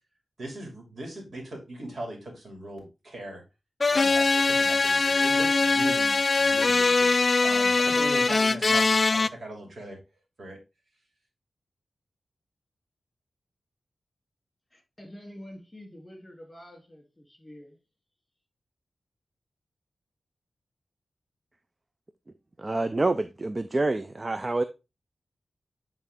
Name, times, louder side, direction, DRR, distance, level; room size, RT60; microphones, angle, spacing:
voice 1, 0.4-3.4 3.9-10.0 10.4-10.6, right 1 dB, 60° right, 2.7 m, -39 dB
sound 1, 3.8-9.3, left 3 dB, 45° left, 0.3 m, -22 dB
voice 2, 14.7-17.8, equal, 15° left, 2.7 m, -47 dB
voice 3, 22.6-24.6, right 2 dB, 30° right, 0.4 m, -27 dB
8.8 x 3.6 x 3.6 m
wide cardioid pair, 85°, 0 cm